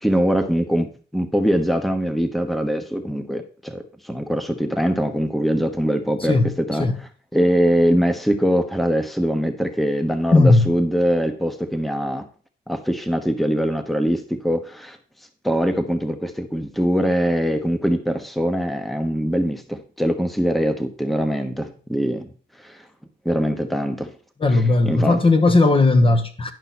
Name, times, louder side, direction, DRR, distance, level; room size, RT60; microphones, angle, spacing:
voice 1, 0.0-12.3 12.7-15.0 15.4-22.3 22.6-22.8 23.2-24.1 24.5-25.2, equal, ahead, 1.0 m, -22 dB
voice 2, 10.3-10.7 24.4-26.5, left 2 dB, 25° left, 1.0 m, -16 dB
11.0 x 5.6 x 4.2 m
cardioid pair, 90°, 20 cm